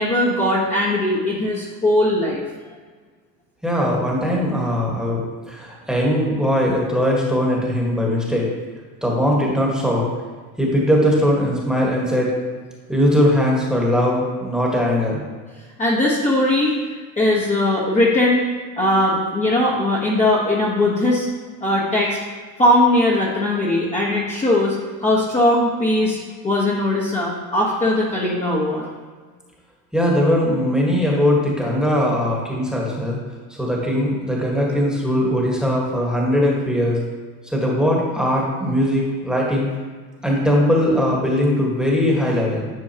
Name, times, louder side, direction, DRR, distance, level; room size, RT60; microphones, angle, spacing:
voice 1, 0.0-2.4 15.8-16.8 17.2-18.5 18.8-21.3 21.6-22.2 22.6-26.2 26.4-28.8, left 1 dB, 15° left, -6 dB, 1.2 m, -19 dB
voice 2, 3.6-8.5 9.0-10.1 10.6-12.4 12.9-15.2 29.9-33.2 33.5-37.0 37.4-39.7 40.2-42.7, equal, ahead, -3 dB, 1.6 m, -20 dB
10.5 x 4.4 x 2.9 m, 1.5 s
supercardioid pair, 105°, 43 cm